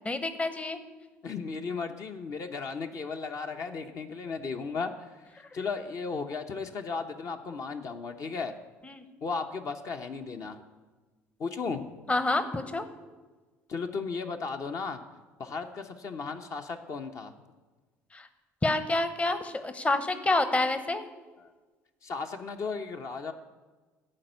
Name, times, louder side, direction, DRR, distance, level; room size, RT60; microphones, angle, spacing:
voice 1, 0.0-0.8 8.9-9.0 12.1-12.9 18.1-18.3 18.6-21.0, left 2 dB, 20° left, 11 dB, 0.8 m, -28 dB
voice 2, 1.2-5.3 5.5-8.5 9.2-10.6 11.4-11.9 13.7-15.0 15.4-17.3 21.4-21.5 22.0-23.3, left 4 dB, 50° left, 5 dB, 0.8 m, -35 dB
11.5 x 4.4 x 8.0 m, 1.3 s
hypercardioid pair, 65°, 7 cm